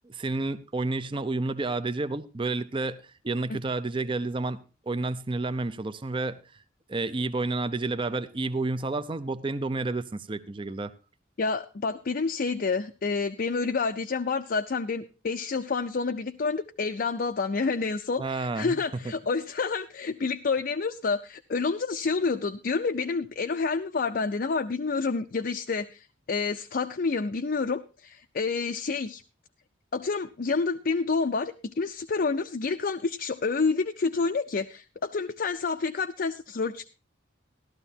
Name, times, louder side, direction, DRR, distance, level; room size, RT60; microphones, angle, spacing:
voice 1, 0.0-3.0 3.2-6.4 6.9-10.9 18.2-18.8, right 3 dB, 25° right, 0.5 m, -30 dB
voice 2, 11.4-29.2 29.9-36.9, left 4 dB, 45° left, 0.5 m, -28 dB
14.5 x 12.5 x 2.8 m
head